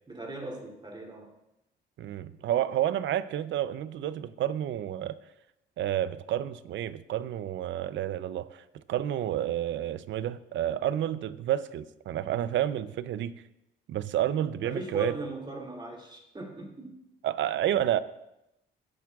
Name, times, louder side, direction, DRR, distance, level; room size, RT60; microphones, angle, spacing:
voice 1, 0.1-1.3 14.6-17.0, right 1 dB, 25° right, 0 dB, 3.0 m, -39 dB
voice 2, 2.0-5.2 5.8-13.3 13.9-15.1 17.2-18.0, right 11 dB, 70° right, 15 dB, 0.6 m, -30 dB
17.0 x 8.7 x 2.4 m, 0.86 s
cardioid pair, 90°, 20 cm